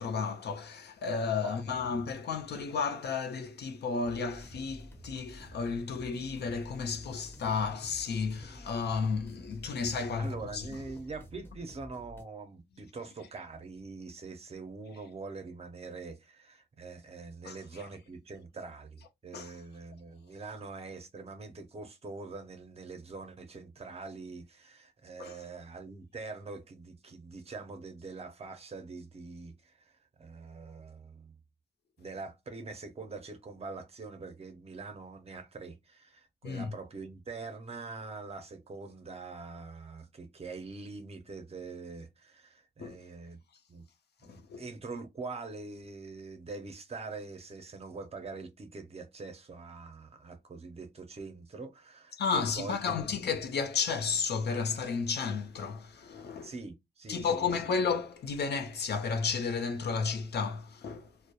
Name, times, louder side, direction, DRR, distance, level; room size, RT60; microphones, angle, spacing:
voice 1, 0.0-10.7 17.4-17.8 19.3-19.5 25.2-25.4 36.4-36.7 42.8-43.0 44.2-44.6 52.2-56.5 57.1-61.1, left 5 dB, 85° left, 0.5 m, -33 dB
sound 1, 4.0-12.2, equal, 15° left, 0.5 m, -50 dB
voice 2, 10.2-31.4 32.0-43.4 43.7-43.8 44.2-53.2 56.4-57.7, right 4 dB, 40° right, 0.5 m, -44 dB
2.2 x 2.0 x 2.7 m
wide cardioid pair, 150°, 17 cm